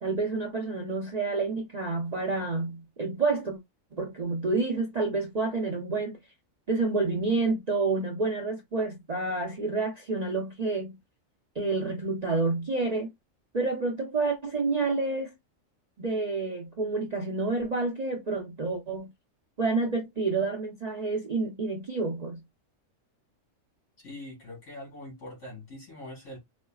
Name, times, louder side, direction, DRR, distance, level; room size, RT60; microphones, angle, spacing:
voice 1, 0.0-3.6 3.9-6.2 6.7-11.0 11.6-13.1 13.5-15.3 16.0-19.1 19.6-22.4, right 3 dB, 40° right, 0.6 m, -29 dB
voice 2, 24.0-26.4, left 1 dB, 60° left, 2.6 m, -43 dB
4.3 x 2.1 x 2.3 m
omnidirectional pair, 1.4 m